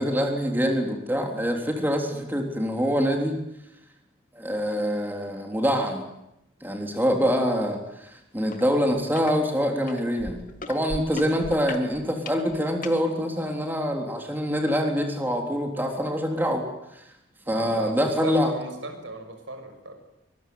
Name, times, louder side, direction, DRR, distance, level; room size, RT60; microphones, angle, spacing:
voice 1, 0.0-3.4 4.3-6.1 6.6-17.0 17.5-18.5, equal, 10° right, 2 dB, 3.5 m, -25 dB
sound 1, 8.5-8.6 9.0-9.3 9.9-13.0 13.7-13.8, left 3 dB, 45° left, 2.2 m, -37 dB
voice 2, 17.5-20.0, right 2 dB, 85° right, 6 dB, 6.5 m, -36 dB
24.0 x 22.5 x 9.5 m, 0.87 s
head